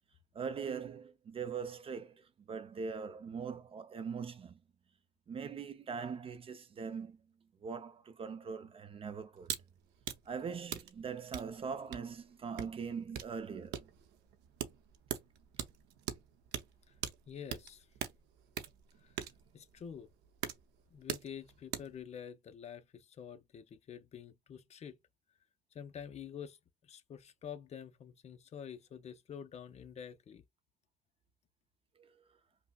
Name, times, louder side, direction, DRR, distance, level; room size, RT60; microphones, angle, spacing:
voice 1, 0.3-4.6 5.3-7.2 7.6-9.5 10.3-13.9 32.0-32.2, right 6 dB, 35° right, 0.5 m, -41 dB
sound 1, 9.4-9.6 9.9-22.0, right 10 dB, 85° right, 0.7 m, -43 dB
voice 2, 17.3-17.9 19.0-19.1 19.5-20.1 20.9-25.0 25.7-26.6 26.8-30.4, left 8 dB, 40° left, 0.5 m, -48 dB
5.4 x 2.0 x 2.2 m
cardioid pair, 110°, 17 cm